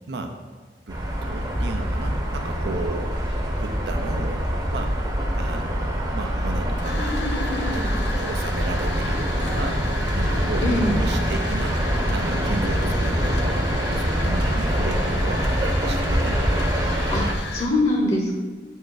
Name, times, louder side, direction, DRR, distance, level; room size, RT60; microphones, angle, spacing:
sound 1, 0.9-17.3, equal, 20° right, 0.8 m, -24 dB
voice 1, 0.9-5.0 5.4-7.3 7.7-9.8 10.2-10.6 11.0-11.8 12.1-13.7 14.0-16.4, right 2 dB, 75° right, 5 dB, 0.6 m, -34 dB
sound 2, 4.4-5.0 5.7-17.7, left 4 dB, 80° left, 0.7 m, -36 dB
sound 3, 6.9-8.2 8.8-9.7, left 1 dB, 60° left, 1.1 m, -32 dB
voice 2, 10.6-11.0 15.0-16.3 17.1-18.3, left 1 dB, 35° left, 0 dB, 0.8 m, -25 dB
8.1 x 4.5 x 4.8 m, 1.4 s
head